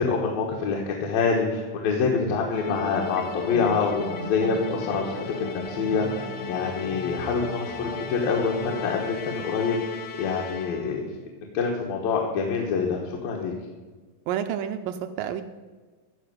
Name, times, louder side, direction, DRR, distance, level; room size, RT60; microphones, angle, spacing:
voice 1, 0.0-11.1 11.5-13.5, left 5 dB, 75° left, -1 dB, 3.0 m, -26 dB
Musical instrument, 2.5-11.0, left 7 dB, 90° left, 1.3 m, -37 dB
sound 1, 2.5-8.8, equal, 35° left, 0.5 m, -36 dB
voice 2, 14.3-15.4, right 9 dB, 80° right, 8 dB, 2.1 m, -29 dB
14.5 x 5.2 x 9.2 m, 1.4 s
omnidirectional pair, 4.3 m